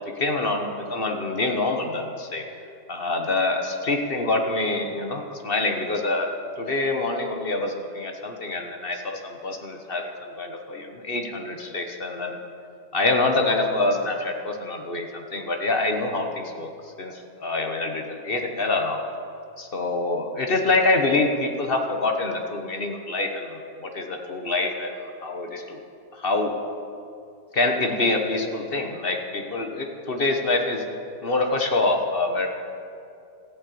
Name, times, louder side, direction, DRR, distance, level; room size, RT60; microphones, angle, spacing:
voice 1, 0.2-2.4 2.9-6.3 6.6-12.4 12.9-19.0 19.6-25.8 26.1-26.5 27.5-30.8 31.2-32.5, left 2 dB, 35° left, 4 dB, 1.2 m, -26 dB
14.0 x 8.9 x 8.5 m, 2.6 s
omnidirectional pair, 1.8 m